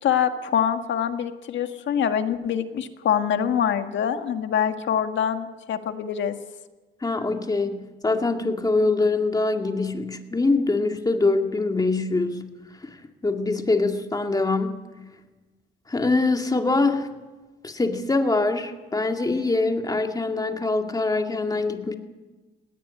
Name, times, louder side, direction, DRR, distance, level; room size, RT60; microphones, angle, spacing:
voice 1, 0.0-6.3, left 8 dB, 70° left, 8 dB, 1.7 m, -24 dB
voice 2, 7.0-12.5 12.8-13.0 13.2-14.8 15.9-17.1 17.6-21.9, left 3 dB, 20° left, 5 dB, 2.2 m, -24 dB
19.0 x 17.5 x 9.6 m, 1.2 s
cardioid pair, 90°, 20 cm